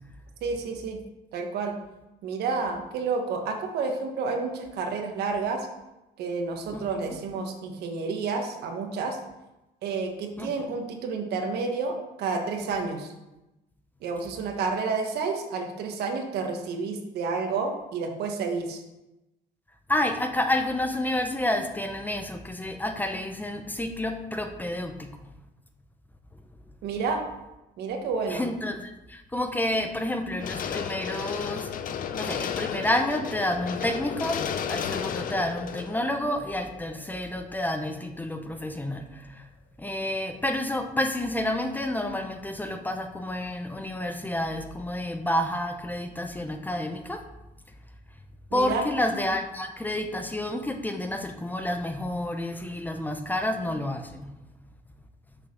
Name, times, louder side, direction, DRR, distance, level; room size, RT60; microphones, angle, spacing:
voice 1, 0.4-1.0 1.3-1.8 2.2-5.7 6.2-9.2 9.8-13.1 14.0-18.8 26.8-27.2 27.8-28.5 48.5-48.8, right 4 dB, 75° right, 4 dB, 1.3 m, -30 dB
voice 2, 19.9-25.2 28.3-31.7 32.1-34.4 34.7-39.4 39.8-47.2 48.5-54.3, left 1 dB, 10° left, 6 dB, 0.7 m, -29 dB
sound 1, 30.4-37.5 37.9-38.0, left 8 dB, 55° left, 0.7 m, -33 dB
6.4 x 5.5 x 6.1 m, 0.98 s
cardioid pair, 110°, 17 cm